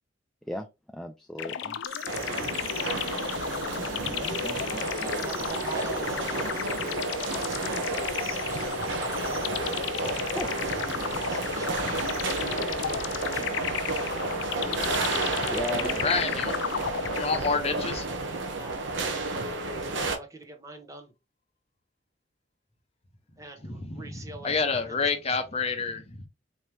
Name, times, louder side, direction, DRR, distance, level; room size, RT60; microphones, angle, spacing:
voice 1, 0.9-1.8 2.9-3.3 3.9-5.8 10.3-10.5 15.5-16.4, left 1 dB, ahead, 0.4 m, -38 dB
sound 1, 1.4-17.8, left 8 dB, 80° left, 0.4 m, -34 dB
sound 2, 1.9-12.4, right 7 dB, 50° right, 0.8 m, -47 dB
sound 3, 2.1-20.2, right 3 dB, 80° right, 1.0 m, -31 dB
voice 2, 4.7-8.4 9.2-10.4 11.1-11.9 12.5-13.7 18.5-18.9 19.8-21.1 23.4-24.6 24.9-25.2, right 3 dB, 20° right, 0.8 m, -45 dB
voice 3, 16.0-16.5 17.1-18.1 23.6-26.3, left 4 dB, 35° left, 0.8 m, -28 dB
4.3 x 2.9 x 3.3 m
head